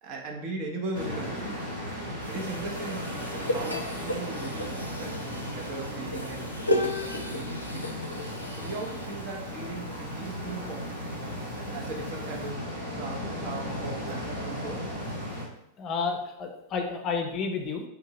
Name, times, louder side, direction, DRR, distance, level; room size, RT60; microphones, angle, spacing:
voice 1, 0.0-1.7 2.3-5.2 5.5-6.5 6.8-8.1 8.5-11.0 11.6-12.6 13.0-14.8, right 3 dB, 40° right, 1 dB, 0.7 m, -38 dB
sound 1, 0.9-15.4, equal, 70° right, 1.3 m, -36 dB
sound 2, 2.1-7.5, right 1 dB, 20° right, 1.0 m, -52 dB
sound 3, 2.2-12.5, left 1 dB, 85° left, 0.4 m, -36 dB
voice 2, 15.8-17.8, left 5 dB, 35° left, 4 dB, 0.5 m, -31 dB
3.8 x 2.7 x 2.8 m, 0.80 s
figure-of-eight pair, 90°, 0 cm